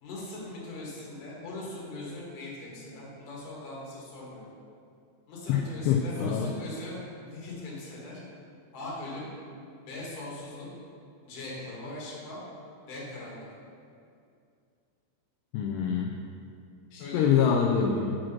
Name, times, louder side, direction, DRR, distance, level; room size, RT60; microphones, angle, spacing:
voice 1, 0.0-4.4 5.3-8.2 8.7-9.3 9.9-10.7 11.2-12.4 12.9-13.5 17.0-17.3, left 2 dB, 55° left, -5 dB, 3.0 m, -40 dB
voice 2, 5.9-6.5 15.5-16.1 16.9-18.2, left 7 dB, 80° left, 0 dB, 2.5 m, -25 dB
6.3 x 6.1 x 5.9 m, 2.4 s
omnidirectional pair, 5.2 m